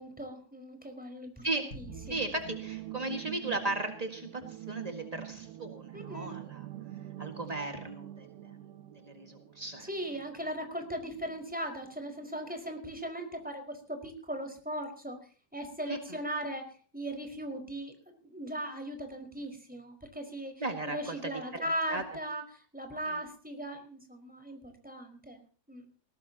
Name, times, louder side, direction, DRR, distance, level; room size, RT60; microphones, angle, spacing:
voice 1, 0.0-2.2 5.9-6.4 9.8-25.8, right 1 dB, ahead, 4 dB, 4.6 m, -39 dB
sound 1, 1.7-4.3, right 1 dB, 30° left, 6.8 m, -51 dB
sound 2, 1.9-11.4 11.8-11.9, right 14 dB, 75° right, 2.5 m, -45 dB
voice 2, 2.1-6.6 7.2-8.6 9.0-9.9 15.9-16.2 20.6-22.0 23.0-23.2, right 2 dB, 30° right, 4 dB, 0.6 m, -36 dB
21.0 x 18.0 x 2.9 m, 0.42 s
omnidirectional pair, 4.0 m